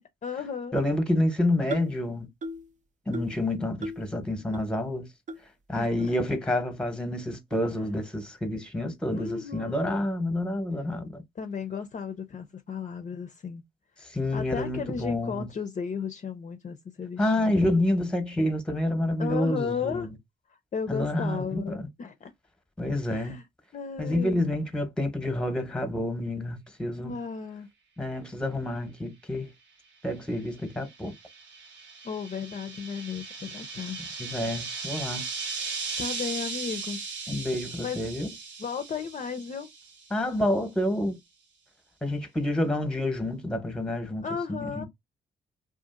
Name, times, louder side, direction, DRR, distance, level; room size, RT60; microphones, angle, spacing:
voice 1, 0.0-0.8 5.8-5.9 9.1-10.0 11.4-13.6 14.3-17.6 19.2-20.1 20.7-22.3 23.1-23.4 23.7-24.4 26.9-27.7 32.0-34.2 36.0-37.0 37.8-38.1 38.6-39.7 44.2-44.8, left 6 dB, 40° left, 0.5 m, -34 dB
voice 2, 0.7-2.3 3.1-5.1 5.7-11.2 14.0-15.5 17.2-20.1 20.9-21.9 22.8-23.4 24.0-27.2 28.0-29.5 30.0-31.1 34.2-35.2 37.3-38.3 40.1-41.2 42.0-44.8, left 1 dB, 5° left, 0.9 m, -28 dB
sound 1, 1.7-2.0 2.4-2.7 3.1-3.4 3.8-4.1 4.5-4.6 5.3-5.4 6.0-6.1 6.8-6.9 7.5-7.7, equal, 40° right, 0.5 m, -37 dB
sound 2, 30.4-40.2, right 4 dB, 70° right, 0.7 m, -37 dB
2.5 x 2.5 x 2.5 m
supercardioid pair, 55°, 19 cm